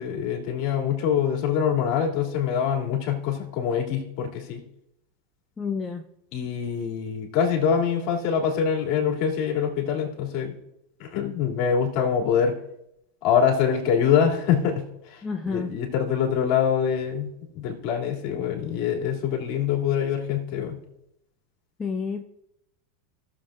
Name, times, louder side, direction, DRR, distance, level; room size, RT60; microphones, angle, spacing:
voice 1, 0.0-4.6 6.3-10.5 11.0-12.6 13.2-17.3 17.5-20.8, left 7 dB, 55° left, 0 dB, 2.8 m, -24 dB
voice 2, 5.6-6.1 15.2-15.7 21.8-22.2, left 5 dB, 20° left, 4 dB, 0.7 m, -30 dB
18.0 x 7.3 x 2.5 m, 0.83 s
hypercardioid pair, 95°, 0 cm